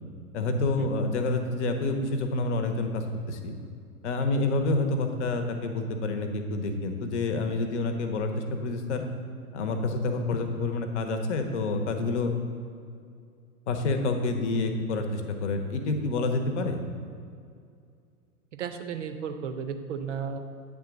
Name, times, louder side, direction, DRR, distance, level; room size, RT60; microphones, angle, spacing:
voice 1, 0.3-3.5 4.0-9.0 9.5-12.3 13.7-16.8, left 3 dB, 50° left, 6 dB, 0.9 m, -28 dB
voice 2, 18.5-20.4, right 7 dB, 55° right, 8 dB, 0.7 m, -34 dB
8.7 x 3.6 x 5.1 m, 2.3 s
figure-of-eight pair, 100°, 44 cm